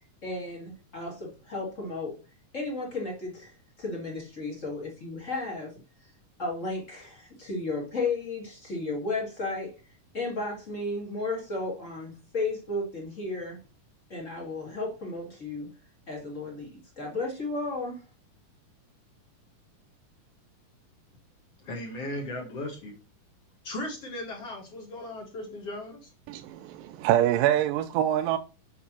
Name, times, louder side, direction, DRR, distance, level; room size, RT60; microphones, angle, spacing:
voice 1, 0.2-2.1 2.5-5.7 6.4-9.7 10.1-13.6 14.1-15.7 16.1-18.0, left 3 dB, 30° left, 1.6 m, -34 dB
voice 2, 21.6-22.9 23.6-26.1, left 1 dB, 50° left, 2.7 m, -37 dB
voice 3, 26.3-28.4, right 12 dB, 85° right, 2.2 m, -25 dB
8.4 x 4.0 x 6.0 m
omnidirectional pair, 3.9 m